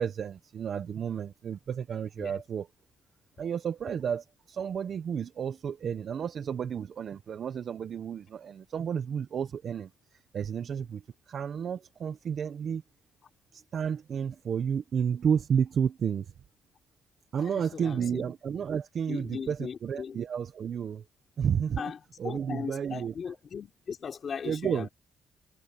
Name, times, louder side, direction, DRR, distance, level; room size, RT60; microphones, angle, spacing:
voice 1, 0.0-2.7 3.4-12.8 13.5-16.3 17.3-21.0 21.4-21.9 22.2-23.1 24.4-24.9, right 7 dB, 55° right, 1.1 m, -31 dB
voice 2, 17.4-18.3 19.1-20.2 21.8-22.0 22.2-24.9, left 6 dB, 50° left, 4.1 m, -38 dB
cardioid pair, 90°, 0 cm